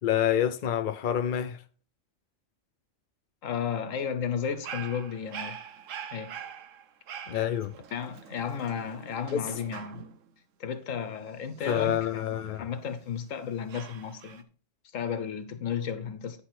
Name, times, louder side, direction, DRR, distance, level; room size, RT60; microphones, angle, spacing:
voice 1, 0.0-1.6 7.3-7.7 9.3-9.4 11.7-12.7, left 10 dB, 60° left, 0.5 m, -27 dB
voice 2, 3.4-5.6 6.1-6.3 7.9-10.0 10.6-14.5 14.9-16.4, left 7 dB, 90° left, 1.3 m, -33 dB
Dog, 4.4-10.3 11.6-13.1 13.7-14.4, right 8 dB, 85° right, 1.2 m, -44 dB
9.8 x 5.8 x 4.4 m
omnidirectional pair, 1.3 m